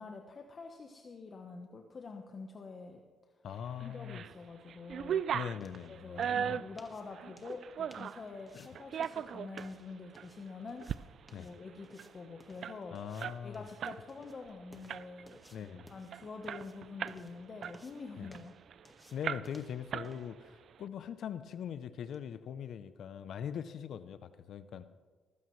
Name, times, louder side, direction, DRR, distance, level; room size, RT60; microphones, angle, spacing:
voice 1, 0.0-3.0 3.8-5.2 5.9-13.0 13.4-18.5, left 4 dB, 40° left, 3 dB, 1.1 m, -46 dB
voice 2, 3.4-4.2 5.3-6.6 8.5-8.7 11.3-11.5 12.9-13.7 15.5-15.9 18.2-18.3 19.1-24.8, left 8 dB, 70° left, 12 dB, 0.6 m, -41 dB
sound 1, 3.8-4.3 4.7-8.2 8.7-9.7 10.2-10.3 10.7-11.0 11.3-11.4 11.7-14.0 14.3-14.5 14.9-15.3 15.8-15.9 16.1-17.2 17.6-18.8 19.2-19.6 19.9-20.5, right 8 dB, 60° right, 0.4 m, -37 dB
sound 2, 4.5-22.3, left 1 dB, 5° left, 1.5 m, -62 dB
19.0 x 15.0 x 3.2 m, 1.4 s
cardioid pair, 90°, 0 cm